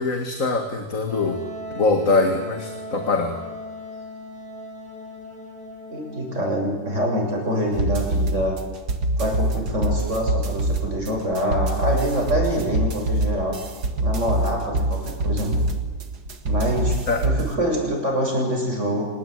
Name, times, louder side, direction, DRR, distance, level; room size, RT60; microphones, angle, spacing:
voice 1, 0.0-1.4 1.7-3.4 17.1-17.3, left 3 dB, 55° left, 5 dB, 2.4 m, -22 dB
Wind instrument woodwind instrument, 1.1-6.6, left 1 dB, 5° left, 7.1 m, -38 dB
voice 2, 5.9-8.6 9.2-13.6 14.0-15.6 16.5-19.1, equal, 50° right, 0 dB, 7.4 m, -25 dB
sound 1, 7.7-17.5, right 2 dB, 85° right, 2.4 m, -25 dB
26.5 x 20.0 x 9.4 m, 1.4 s
omnidirectional pair, 1.7 m